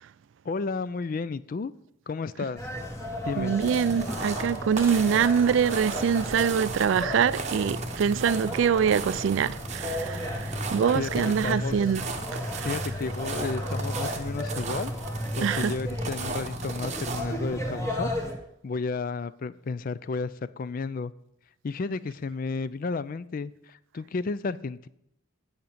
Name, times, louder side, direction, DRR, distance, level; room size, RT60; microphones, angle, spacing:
voice 1, 0.4-1.7 2.1-2.6 3.2-3.6 10.9-11.8 12.6-14.9 15.4-18.1 18.6-21.1 21.6-24.9, left 4 dB, 45° left, 0.3 m, -32 dB
sound 1, 2.6-18.3, left 1 dB, 15° left, 1.3 m, -34 dB
sound 2, 3.3-4.4 4.8-7.4 7.8-7.9 8.1-8.2 9.4-9.9 10.2-11.0 12.0-12.6, right 1 dB, 10° right, 1.9 m, -44 dB
voice 2, 3.4-12.7 15.4-15.7, right 7 dB, 65° right, 0.3 m, -25 dB
sound 3, 3.6-17.3, right 4 dB, 35° right, 0.9 m, -37 dB
9.4 x 5.2 x 7.2 m
head